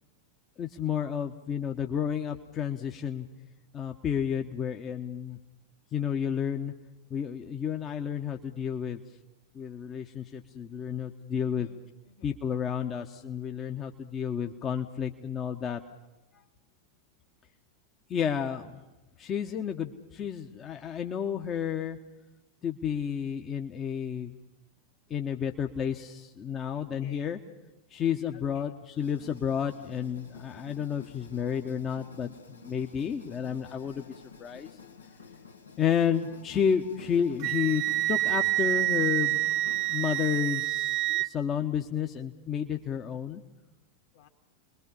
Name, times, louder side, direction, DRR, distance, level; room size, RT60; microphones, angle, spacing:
voice 1, 0.6-3.3 3.7-5.4 5.9-6.7 7.1-9.0 9.5-11.7 12.2-15.8 18.1-18.8 19.2-22.0 22.6-24.3 25.1-27.4 27.9-34.0 34.4-34.7 35.8-39.4 39.9-43.4, left 8 dB, 25° left, 4 dB, 1.1 m, -31 dB
voice 2, 11.4-12.4 26.7-27.3 28.3-28.7 44.1-44.3, left 7 dB, 55° left, 4 dB, 2.4 m, -57 dB
sound 1, 29.0-40.5, left 5 dB, 75° left, 1.4 m, -50 dB
Wind instrument woodwind instrument, 37.4-41.3, right 17 dB, 40° right, 0.8 m, -27 dB
30.0 x 21.5 x 5.5 m, 1.0 s
figure-of-eight pair, 90°, 0 cm